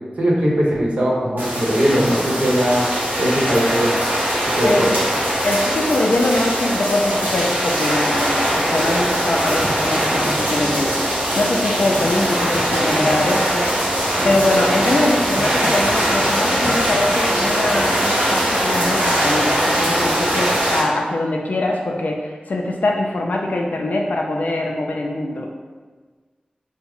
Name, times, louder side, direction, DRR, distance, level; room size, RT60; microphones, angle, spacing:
voice 1, 0.2-2.9 3.2-3.9 4.5-4.9, equal, 55° right, -4 dB, 0.8 m, -19 dB
sound 1, 1.4-20.8, equal, 90° right, 0.8 m, -21 dB
voice 2, 4.6-5.1 5.4-13.7 14.2-25.5, left 2 dB, 65° left, 1 dB, 0.3 m, -22 dB
sound 2, 8.5-18.4 18.9-19.2, right 1 dB, 40° right, 0.4 m, -34 dB
3.4 x 2.0 x 3.6 m, 1.4 s
wide cardioid pair, 70°, 3 cm